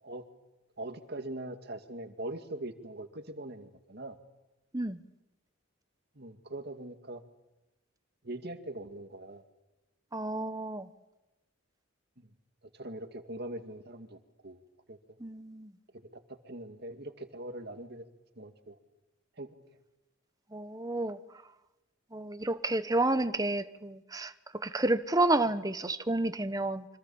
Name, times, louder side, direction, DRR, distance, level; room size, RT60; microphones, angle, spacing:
voice 1, 0.8-4.2 6.2-7.2 8.2-9.4 12.2-12.3 12.7-14.6 14.9-15.0 16.1-18.0 18.4-18.8 19.4-19.5, right 1 dB, 55° right, 2.2 m, -42 dB
voice 2, 10.1-10.9 15.2-15.7 20.5-21.2 22.1-24.3 24.6-26.8, right 2 dB, 20° right, 1.2 m, -30 dB
28.5 x 25.5 x 7.2 m
head